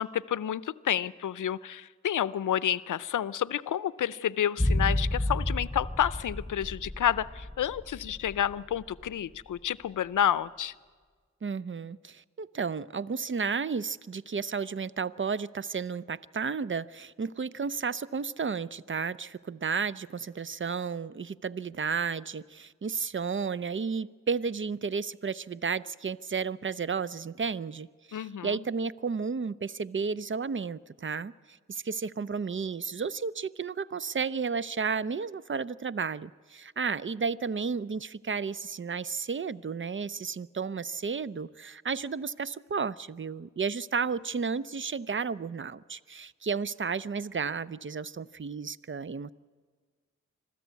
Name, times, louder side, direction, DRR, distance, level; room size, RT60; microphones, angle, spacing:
voice 1, 0.0-10.7 28.1-28.6, left 10 dB, 85° left, 18 dB, 0.5 m, -30 dB
sound 1, 4.6-8.8 9.1-9.2, left 1 dB, 5° left, 0.6 m, -30 dB
voice 2, 11.4-49.3, right 5 dB, 40° right, 17 dB, 0.6 m, -33 dB
25.5 x 15.0 x 8.3 m, 1.5 s
cardioid pair, 40°, 30 cm